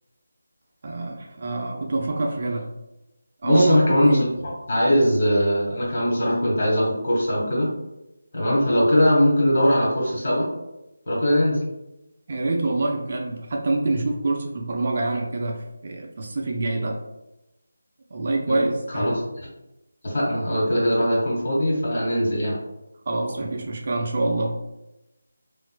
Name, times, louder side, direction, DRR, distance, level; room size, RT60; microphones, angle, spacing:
voice 1, 0.8-2.7 3.4-4.2 12.3-17.0 18.1-19.1 23.1-24.6, right 2 dB, 45° right, 1 dB, 0.4 m, -25 dB
voice 2, 3.4-4.3 4.7-7.7 8.3-10.5 11.1-11.6 18.5-19.5 20.0-22.6, equal, 45° left, -5 dB, 1.4 m, -21 dB
3.7 x 2.5 x 2.2 m, 0.94 s
figure-of-eight pair, 160°, 0 cm